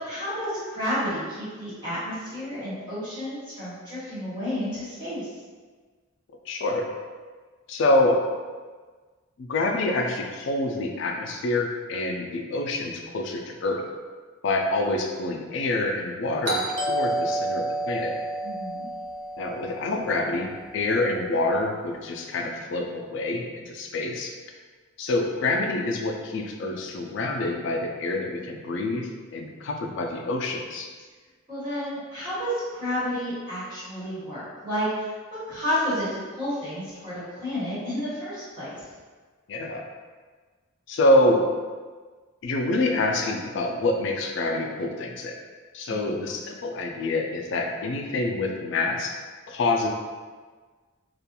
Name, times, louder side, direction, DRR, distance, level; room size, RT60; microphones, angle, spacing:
voice 1, 0.0-5.4 18.4-18.9 31.5-35.1 35.5-38.8 45.9-46.3, equal, 20° right, -12 dB, 1.2 m, -31 dB
voice 2, 6.5-6.9 7.7-8.2 9.4-13.8 14.4-16.6 16.9-18.1 19.4-24.3 25.0-30.9 39.5-39.8 40.9-41.5 42.4-45.4 45.7-49.1 49.5-49.9, left 2 dB, 60° left, 2 dB, 0.3 m, -26 dB
Doorbell, 16.4-21.0, right 1 dB, 55° right, 0.5 m, -30 dB
2.4 x 2.2 x 2.9 m, 1.4 s
head